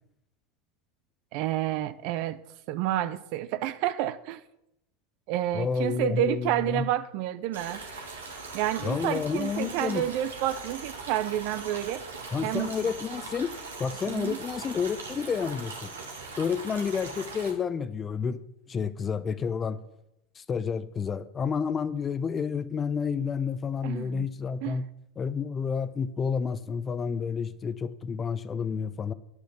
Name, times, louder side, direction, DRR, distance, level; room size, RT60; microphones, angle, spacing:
voice 1, 1.3-2.4 2.7-4.4 5.3-7.9 8.5-12.0 12.4-12.7 14.1-14.4 23.8-24.3 24.6-24.8, right 13 dB, 60° right, 0.6 m, -29 dB
voice 2, 5.5-6.9 8.8-10.0 12.3-15.9 16.4-18.4 18.7-19.8 20.4-24.8 25.2-29.1, left 6 dB, 30° left, 0.7 m, -30 dB
sound 1, 7.5-17.5, right 3 dB, 85° right, 1.9 m, -40 dB
9.9 x 6.5 x 6.9 m
hypercardioid pair, 85°, 0 cm